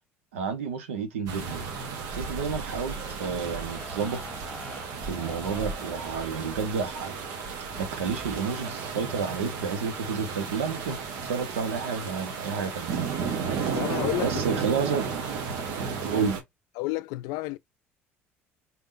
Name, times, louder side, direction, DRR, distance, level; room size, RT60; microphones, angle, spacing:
voice 1, 0.3-1.6 2.1-4.2 5.0-7.1 7.8-11.0 11.2-12.9 14.2-15.1 16.0-16.4, right 6 dB, 80° right, 0.8 m, -30 dB
sound 1, 1.3-16.4, right 5 dB, 65° right, 1.1 m, -33 dB
sound 2, 2.9-6.8 7.7-8.4, left 1 dB, 5° left, 1.6 m, -45 dB
voice 2, 13.7-14.4 16.8-17.6, left 19 dB, 65° left, 0.3 m, -30 dB
4.3 x 3.6 x 2.6 m
hypercardioid pair, 60°, 7 cm